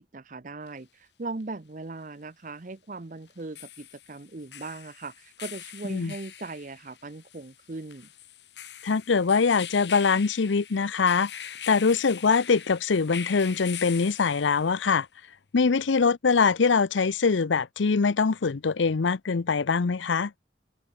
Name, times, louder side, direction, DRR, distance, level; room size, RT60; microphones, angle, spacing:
voice 1, 0.0-8.1, right 3 dB, 45° right, 0.8 m, -39 dB
sound 1, 0.7-0.8 3.3-14.9, left 10 dB, 70° left, 6.8 m, -42 dB
voice 2, 8.8-11.3 11.7-15.1 15.5-20.3, left 5 dB, 90° left, 0.6 m, -23 dB
head